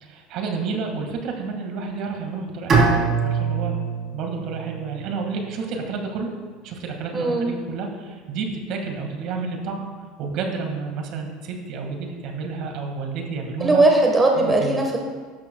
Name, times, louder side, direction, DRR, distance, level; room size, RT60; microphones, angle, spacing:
voice 1, 0.0-3.8 4.1-6.3 6.6-9.9 10.2-13.9 14.4-14.8, right 4 dB, 60° right, 3 dB, 1.9 m, -30 dB
Bowed string instrument, 2.7-5.7, right 4 dB, 35° right, 3.2 m, -23 dB
voice 2, 7.1-7.5 13.6-15.0, right 2 dB, 15° right, 1 dB, 1.4 m, -18 dB
13.0 x 11.5 x 2.3 m, 1.5 s
supercardioid pair, 115°, 0 cm